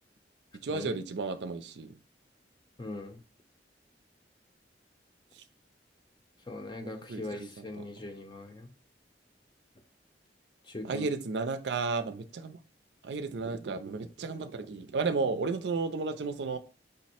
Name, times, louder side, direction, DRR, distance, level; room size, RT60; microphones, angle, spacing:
voice 1, 0.6-2.0 5.3-5.4 6.8-7.9 10.8-12.6 13.0-16.6, right 4 dB, 70° right, 0.5 m, -33 dB
voice 2, 2.8-3.2 6.5-8.7 10.7-11.1, left 2 dB, 25° left, 0.6 m, -40 dB
5.2 x 2.1 x 4.2 m
head